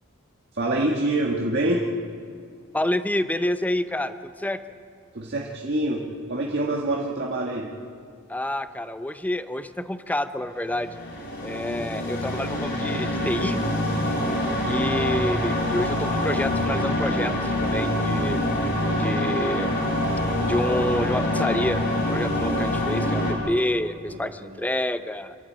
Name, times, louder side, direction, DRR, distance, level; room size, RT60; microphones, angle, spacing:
voice 1, 0.5-1.9 5.1-6.0 6.3-7.7 14.1-14.3 24.1-24.6, right 1 dB, 55° right, -2 dB, 1.7 m, -26 dB
voice 2, 2.7-4.6 8.3-10.9 11.4-13.6 14.6-18.4 19.0-19.7 20.5-25.4, left 1 dB, 5° left, 11 dB, 0.7 m, -28 dB
sound 1, 10.7-23.3, left 1 dB, 50° left, 4.8 m, -25 dB
27.0 x 13.0 x 8.8 m, 2.2 s
head